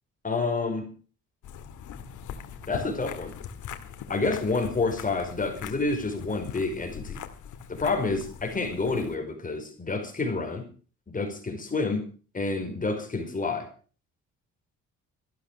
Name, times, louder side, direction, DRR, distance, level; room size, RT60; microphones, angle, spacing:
voice 1, 0.2-0.9 2.7-3.3 4.1-7.2 7.7-10.6 11.1-12.0 12.3-13.7, left 3 dB, 25° left, 4 dB, 5.0 m, -28 dB
sound 1, 1.4-9.2, left 7 dB, 80° left, 1.9 m, -41 dB
13.5 x 12.0 x 6.5 m, 0.40 s
cardioid pair, 90°, 30 cm